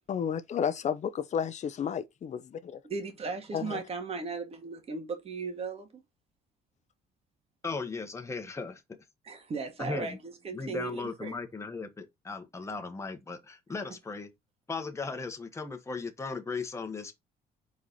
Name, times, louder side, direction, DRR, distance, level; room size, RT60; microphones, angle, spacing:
voice 1, 0.1-2.8 3.5-3.8, left 8 dB, 45° left, 0.9 m, -32 dB
voice 2, 2.8-6.0 9.2-11.4, right 4 dB, 35° right, 2.0 m, -37 dB
voice 3, 7.6-8.8 9.8-10.2 10.5-14.3 14.7-17.1, left 4 dB, 15° left, 1.3 m, -37 dB
4.8 x 4.7 x 4.2 m
cardioid pair, 110°, 17 cm